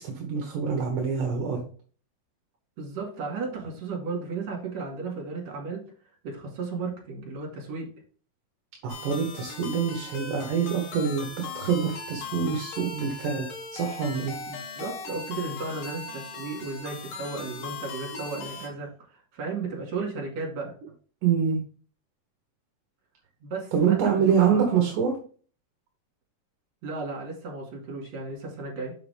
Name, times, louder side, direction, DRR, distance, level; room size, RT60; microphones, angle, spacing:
voice 1, 0.0-1.6 8.8-13.5 13.7-14.4 21.2-21.6 23.7-25.2, right 7 dB, 65° right, 2 dB, 2.4 m, -25 dB
voice 2, 2.8-5.8 6.2-7.9 14.5-20.7 23.4-24.7 26.8-28.9, right 4 dB, 50° right, -1 dB, 3.2 m, -34 dB
sound 1, 8.9-18.7, left 4 dB, 85° left, 3.6 m, -39 dB
7.2 x 5.7 x 3.5 m, 0.42 s
omnidirectional pair, 4.5 m